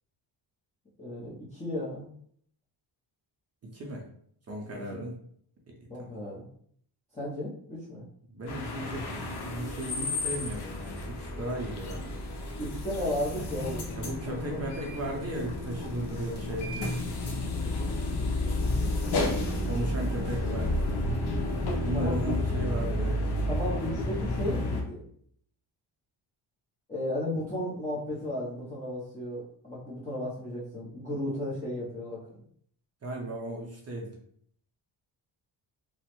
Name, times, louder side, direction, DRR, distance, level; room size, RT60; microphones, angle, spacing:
voice 1, 1.0-2.1 4.9-5.0 5.9-6.5 7.1-8.0 12.6-13.9 14.5-14.7 20.1-20.2 21.9-22.3 23.5-25.0 26.9-32.2, left 1 dB, 15° left, -9 dB, 0.7 m, -34 dB
voice 2, 3.6-4.0 4.5-5.1 8.3-9.1 9.4-12.2 14.0-17.0 19.6-20.9 21.8-23.2 33.0-34.1, right 1 dB, 35° right, -1 dB, 0.5 m, -36 dB
sound 1, 8.5-24.8, left 1 dB, 55° left, 0.7 m, -31 dB
3.0 x 2.0 x 2.9 m, 0.64 s
cardioid pair, 125°, 47 cm